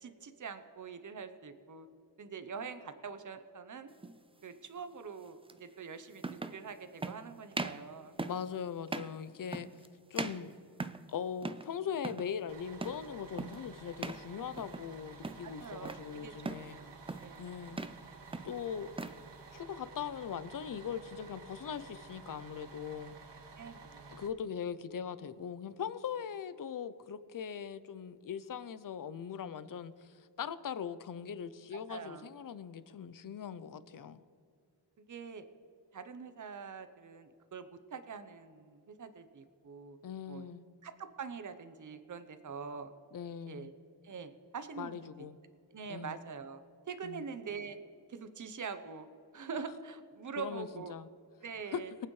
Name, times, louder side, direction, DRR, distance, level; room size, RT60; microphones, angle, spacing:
voice 1, 0.0-1.9 2.2-3.9 4.4-8.1 15.4-17.5 23.6-24.2 31.7-32.3 35.0-35.4 35.9-40.0 40.3-40.5 40.8-42.9 43.5-43.7 44.0-45.3 45.7-46.6 46.9-47.8 48.1-49.1 49.3-50.9 51.4-51.9, right 5 dB, 45° right, 0.8 m, -44 dB
sound 1, 4.0-4.2 5.5-5.6 6.2-6.6 7.0-7.2 7.5-7.9 8.2-8.5 8.9-9.2 9.5-9.9 10.2-11.1 11.4-11.7 12.0-12.3 12.8-13.1 13.4-13.7 14.0-14.3 14.6-14.9 15.2-16.1 16.5-16.7 17.1-17.4 17.7-18.0 18.3-19.2, right 3 dB, 15° right, 0.3 m, -40 dB
voice 2, 8.3-9.7 10.1-10.5 11.1-16.8 17.4-17.8 18.4-18.9 19.5-23.1 24.1-34.2 40.0-40.7 43.1-43.7 44.8-45.4 45.9-46.2 47.0-47.2 50.4-51.1 51.7-51.8, left 7 dB, 50° left, 0.6 m, -40 dB
Bus, 12.5-24.3, right 4 dB, 85° right, 1.1 m, -52 dB
23.0 x 8.8 x 3.2 m
wide cardioid pair, 145°, 41 cm